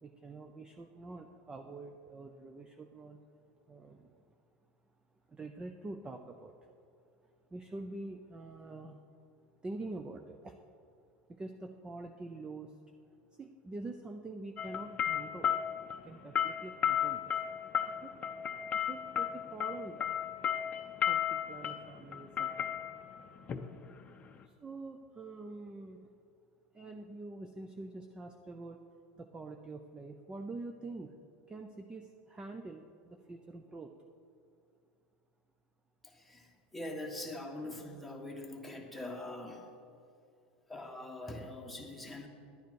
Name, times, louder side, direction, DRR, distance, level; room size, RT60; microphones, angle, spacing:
voice 1, 0.0-3.2 3.7-4.3 5.3-6.5 7.2-9.0 9.6-10.6 11.3-12.8 13.3-15.6 16.0-17.3 18.0-18.1 18.7-20.2 21.0-22.9 24.4-26.1 26.7-28.8 29.2-31.1 31.5-33.9, right 2 dB, 15° right, 5 dB, 0.5 m, -46 dB
sound 1, 14.6-24.4, left 9 dB, 25° left, 0.6 m, -34 dB
voice 2, 36.0-39.6 40.7-42.3, left 1 dB, ahead, 0 dB, 1.3 m, -43 dB
10.5 x 9.3 x 4.7 m, 2.5 s
supercardioid pair, 125°, 5 cm